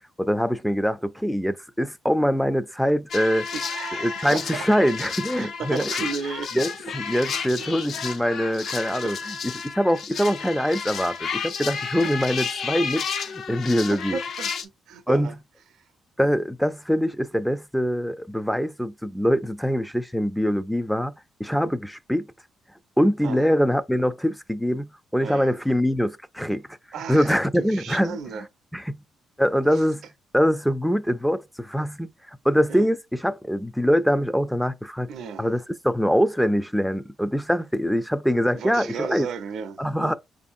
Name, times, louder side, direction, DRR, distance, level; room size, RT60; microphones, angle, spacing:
voice 1, 0.2-3.5 4.0-5.8 6.5-14.2 15.1-15.3 16.2-22.3 23.0-26.6 27.1-28.2 28.7-29.0 29.4-30.0 30.3-35.1 35.4-39.3 39.8-40.1, equal, ahead, 0.3 m, -23 dB
sound 1, 3.1-14.6, left 6 dB, 65° left, 0.5 m, -32 dB
voice 2, 3.5-4.7 5.3-6.5 7.6-7.8 8.6-8.7 9.0-9.1 13.5-15.4 15.8-15.9 23.2-23.7 25.2-25.6 26.9-28.5 29.6-29.8 32.7-32.9 35.1-35.6 38.5-40.1, right 6 dB, 75° right, 0.4 m, -35 dB
4.9 x 2.6 x 2.5 m
cardioid pair, 90°, 0 cm